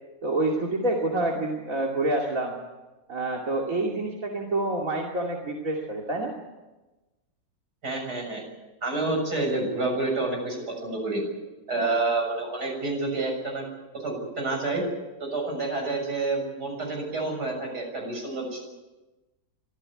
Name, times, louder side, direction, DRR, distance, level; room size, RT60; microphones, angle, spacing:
voice 1, 0.2-2.6 3.1-6.3, right 2 dB, 50° right, -1 dB, 2.9 m, -27 dB
voice 2, 7.8-8.4 8.8-11.2 11.7-13.7 13.9-14.8 15.2-18.6, right 3 dB, 65° right, 2 dB, 7.5 m, -28 dB
25.0 x 15.5 x 9.8 m, 1.1 s
omnidirectional pair, 1.9 m